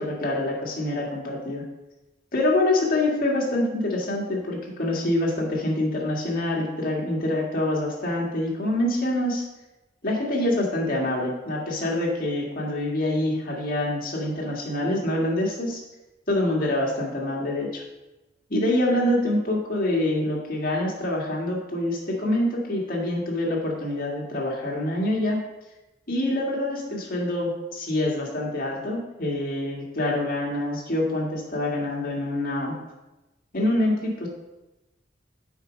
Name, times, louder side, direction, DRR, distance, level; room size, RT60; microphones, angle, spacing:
voice 1, 0.0-1.6 2.3-9.4 10.0-15.8 16.3-17.8 18.5-25.4 26.1-32.7 33.5-34.3, left 1 dB, 50° left, -2 dB, 1.8 m, -26 dB
7.2 x 5.0 x 5.1 m, 1.0 s
head